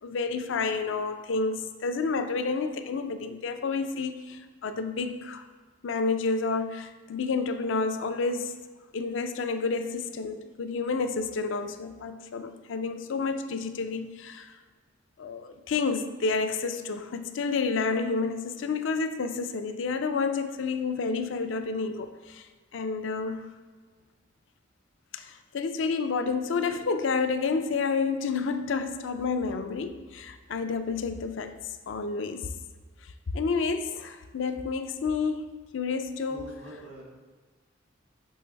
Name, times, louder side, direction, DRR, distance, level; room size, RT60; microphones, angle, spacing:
voice 1, 0.0-5.5 5.8-8.5 8.9-14.6 15.2-22.5 22.7-23.5 25.1-32.5 33.0-36.5, left 4 dB, 70° left, 0.4 m, -30 dB
voice 2, 36.3-37.0, right 1 dB, 85° right, 1.6 m, -44 dB
6.3 x 3.3 x 5.3 m
head